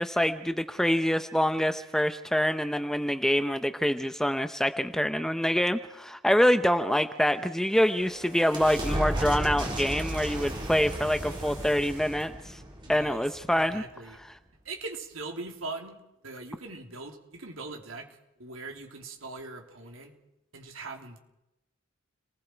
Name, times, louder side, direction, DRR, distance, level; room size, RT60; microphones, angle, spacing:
voice 1, 0.0-12.6 12.9-13.8, equal, ahead, 9 dB, 0.8 m, -26 dB
sound 1, 7.4-13.8, right 1 dB, 25° right, 4.5 m, -35 dB
voice 2, 12.8-14.2 14.7-16.0 16.2-18.1 18.4-20.1 20.5-21.2, right 3 dB, 70° right, 3 dB, 3.3 m, -41 dB
30.0 x 20.0 x 4.6 m, 0.89 s
head